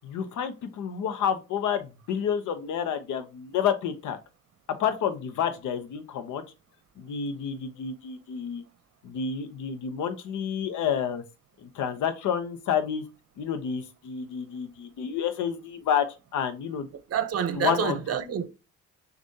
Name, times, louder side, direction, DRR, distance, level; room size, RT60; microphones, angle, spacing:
voice 1, 0.0-4.2 4.8-6.4 7.0-8.6 9.0-11.2 11.6-13.0 13.4-16.0 16.3-16.9 17.5-18.0, left 8 dB, 80° left, 0.9 m, -29 dB
voice 2, 17.1-18.5, right 8 dB, 50° right, 0.7 m, -28 dB
6.3 x 2.5 x 2.7 m
cardioid pair, 90°, 30 cm